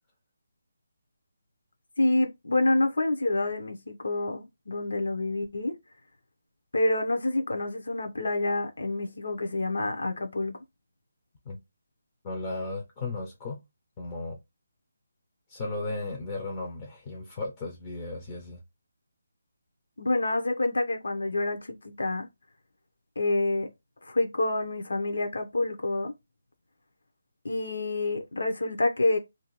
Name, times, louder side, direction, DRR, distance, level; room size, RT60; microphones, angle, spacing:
voice 1, 2.0-5.8 6.7-10.6 20.0-22.3 23.2-23.7 24.0-26.1 27.4-29.2, left 2 dB, 75° left, 0.7 m, -27 dB
voice 2, 12.2-13.6 14.0-14.4 15.5-18.6, left 2 dB, 20° left, 0.4 m, -35 dB
2.6 x 2.2 x 2.9 m
hypercardioid pair, 175°, 0 cm